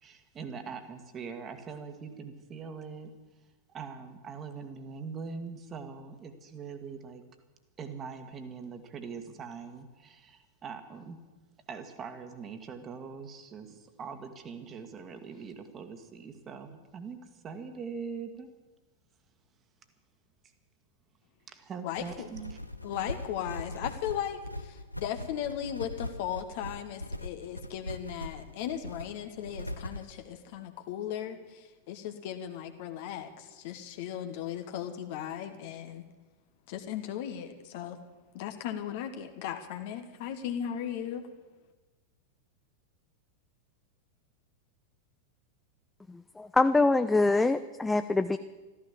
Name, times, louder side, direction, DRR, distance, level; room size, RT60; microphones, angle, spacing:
voice 1, 0.0-3.1 3.7-7.2 7.8-11.2 11.7-18.5 21.5-22.6, right 5 dB, 25° right, 8 dB, 1.8 m, -42 dB
voice 2, 21.8-22.3 22.8-36.1 36.7-38.0 38.3-41.3, left 10 dB, 50° left, 6 dB, 1.2 m, -37 dB
sound 1, 21.9-30.1, left 1 dB, 85° left, 0.7 m, -41 dB
voice 3, 46.1-48.4, left 3 dB, 10° left, 10 dB, 0.5 m, -25 dB
14.0 x 13.5 x 7.4 m, 1.2 s
figure-of-eight pair, 90°, 0 cm